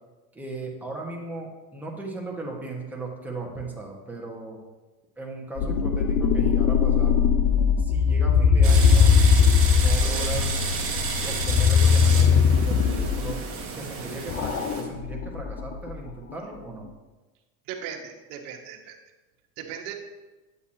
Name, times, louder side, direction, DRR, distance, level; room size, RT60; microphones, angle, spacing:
voice 1, 0.3-4.6 5.2-7.2 7.8-10.6 11.2-13.4 13.7-16.9, right 3 dB, 5° right, -2 dB, 1.6 m, -36 dB
sound 1, 5.6-13.4 14.3-16.1, left 6 dB, 30° left, 0.5 m, -20 dB
sound 2, 8.6-14.8, right 4 dB, 30° right, 1.7 m, -31 dB
voice 2, 17.7-19.0 19.6-19.9, right 8 dB, 70° right, 3 dB, 1.4 m, -37 dB
8.3 x 8.3 x 2.9 m, 1.2 s
supercardioid pair, 105°, 46 cm